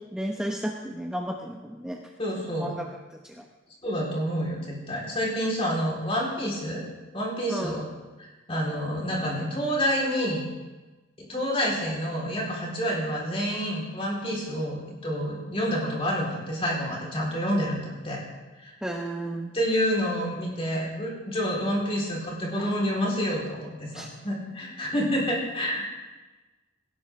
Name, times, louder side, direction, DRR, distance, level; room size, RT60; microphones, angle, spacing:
voice 1, 0.1-2.0 2.5-3.4 7.5-7.8 18.8-19.6 23.9-24.1, right 1 dB, 5° right, 0 dB, 0.9 m, -33 dB
voice 2, 2.2-2.7 3.8-6.8 7.1-7.8 8.2-10.4 11.2-18.2 18.6-18.7 19.5-25.9, equal, 30° left, -3 dB, 4.3 m, -28 dB
18.0 x 17.0 x 3.7 m, 1.2 s
head